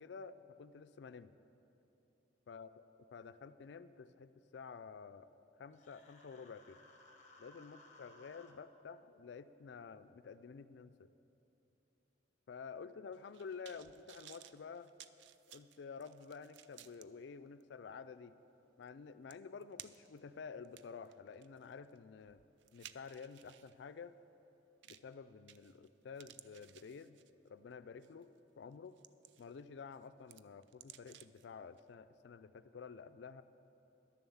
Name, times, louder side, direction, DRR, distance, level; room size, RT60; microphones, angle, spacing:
voice 1, 0.0-1.3 2.5-2.7 3.1-5.3 5.6-6.8 7.4-11.0 12.5-14.9 15.5-18.4 18.8-22.4 22.7-24.1 24.8-27.2 27.4-28.3 28.6-29.0 29.4-33.4, left 5 dB, 65° left, 14 dB, 0.3 m, -51 dB
Human voice, 5.7-8.5, left 2 dB, 40° left, 0.9 m, -61 dB
sound 1, 13.1-17.1 17.6-17.7 18.9-19.0 19.3-20.2 20.6-23.7 24.8-25.1 25.5-25.9 26.2-27.5 28.0-28.2 28.7-29.6 29.9-31.5 31.8-31.9, right 11 dB, 70° right, 0.3 m, -58 dB
11.5 x 7.1 x 7.1 m, 2.9 s
head